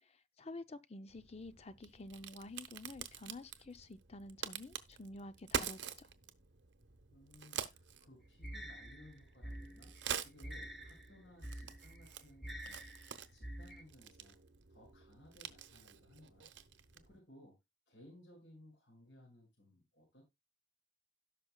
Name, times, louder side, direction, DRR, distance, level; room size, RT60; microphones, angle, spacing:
voice 1, 0.0-6.1, left 2 dB, 35° left, 0.6 m, -50 dB
Crack, 1.1-17.2, right 7 dB, 70° right, 1.0 m, -47 dB
voice 2, 7.1-9.9 10.2-12.8 13.3-14.4 14.7-16.5 16.9-17.6 17.9-20.2, left 1 dB, 65° left, 5.8 m, -61 dB
sound 1, 8.4-13.8, equal, ahead, 1.1 m, -48 dB
17.0 x 5.7 x 2.3 m
head